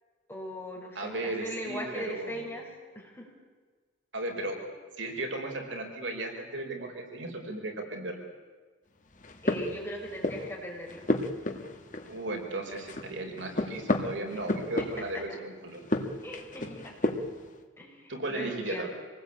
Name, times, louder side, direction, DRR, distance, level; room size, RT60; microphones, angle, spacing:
voice 1, 0.3-2.7 2.9-3.3 9.4-11.1 14.3-14.4 14.8-14.9 15.1-15.4 16.2-16.9 17.8-18.9, equal, 10° left, -1 dB, 5.7 m, -39 dB
voice 2, 0.9-2.5 4.1-4.6 5.0-8.2 12.1-15.8 18.1-18.9, right 2 dB, 70° right, 2 dB, 4.9 m, -35 dB
sound 1, 9.1-10.5 10.9-12.4 12.7-15.3 15.7-17.4, left 1 dB, 40° left, 1.9 m, -32 dB
26.0 x 19.5 x 8.9 m, 1.5 s
head